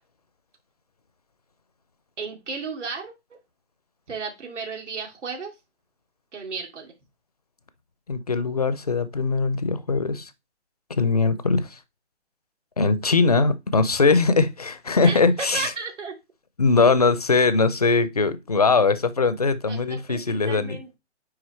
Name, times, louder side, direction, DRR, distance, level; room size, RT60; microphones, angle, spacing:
voice 1, 2.2-3.1 4.1-5.5 6.3-6.9 15.0-16.1 19.7-21.0, right 4 dB, 80° right, 2.8 m, -34 dB
voice 2, 8.1-10.3 11.0-11.8 12.8-15.7 16.6-20.8, left 4 dB, 35° left, 0.4 m, -21 dB
9.4 x 3.5 x 3.1 m
hypercardioid pair, 165°, 35 cm